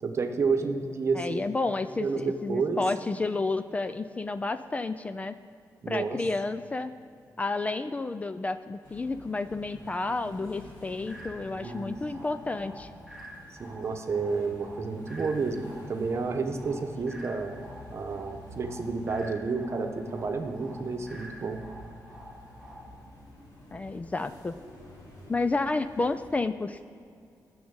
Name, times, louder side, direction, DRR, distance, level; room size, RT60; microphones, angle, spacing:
voice 1, 0.0-1.5 2.0-2.8 5.8-6.2 11.6-12.0 13.5-17.6 17.9-21.6, right 4 dB, 45° right, 6 dB, 1.0 m, -30 dB
voice 2, 1.1-5.3 5.9-6.9 7.4-12.9 23.7-24.5 25.3-26.8, left 3 dB, 20° left, 11 dB, 0.3 m, -31 dB
sound 1, 8.8-26.3, left 1 dB, 85° left, 2.8 m, -49 dB
sound 2, 11.1-23.1, right 1 dB, 5° right, 1.9 m, -48 dB
14.0 x 6.4 x 8.8 m, 2.5 s
wide cardioid pair, 135°, 7 cm